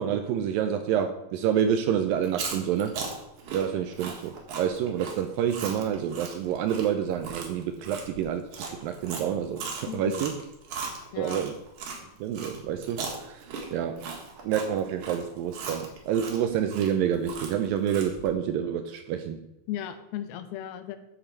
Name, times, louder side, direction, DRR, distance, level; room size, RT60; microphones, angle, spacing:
voice 1, 0.0-3.0 3.5-10.3 11.2-11.5 12.2-13.5 13.7-14.1 14.4-19.4, right 9 dB, 85° right, 7 dB, 2.1 m, -28 dB
Chewing mastication, 2.2-12.0 12.3-18.3, right 5 dB, 60° right, 2.8 m, -38 dB
voice 2, 9.9-10.3 11.1-11.4 19.7-21.0, left 11 dB, 80° left, 10 dB, 2.5 m, -35 dB
10.5 x 7.9 x 4.6 m, 0.90 s
omnidirectional pair, 4.5 m